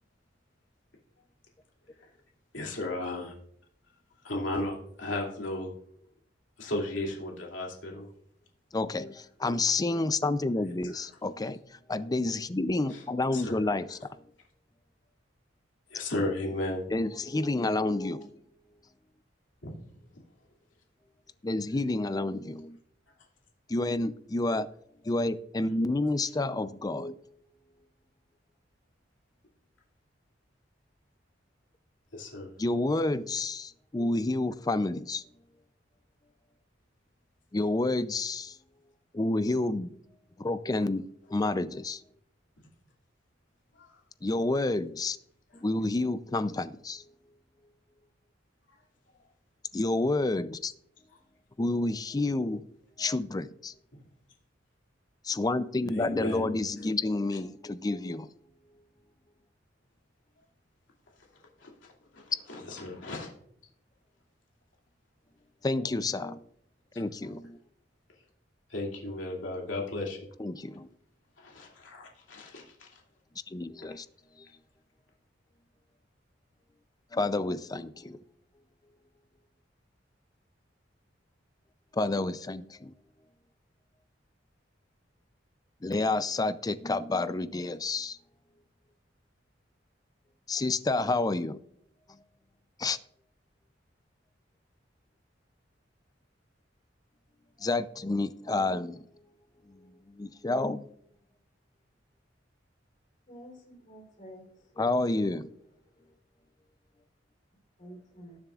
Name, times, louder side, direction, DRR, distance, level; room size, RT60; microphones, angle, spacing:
voice 1, 2.5-3.3 4.2-5.7 6.6-8.1 10.8-11.0 12.9-13.0 13.3-13.6 15.9-17.0 19.6-19.8 32.1-32.5 43.8-43.9 55.9-56.5 61.6-63.3 66.9-67.0 68.7-70.2 71.4-72.9, left 2 dB, 85° left, -1 dB, 2.6 m, -35 dB
voice 2, 8.7-11.6 11.9-14.0 16.9-18.3 21.4-22.8 23.7-24.7 25.0-27.2 32.6-35.2 37.5-38.6 39.1-39.9 40.4-42.0 44.2-45.2 45.6-47.0 49.7-50.7 51.6-52.6 53.0-53.7 55.2-58.3 65.6-66.4 67.0-67.6 70.4-70.9 73.5-74.1 77.1-78.2 81.9-82.9 85.8-88.2 90.5-91.6 92.8-93.0 97.6-99.0 99.7-99.8 100.1-100.9 104.8-105.5, left 2 dB, 20° left, 14 dB, 0.5 m, -29 dB
voice 3, 103.3-104.7 106.0-106.1 107.8-108.4, equal, 45° left, 0 dB, 3.7 m, -49 dB
19.0 x 7.2 x 2.4 m, 0.69 s
head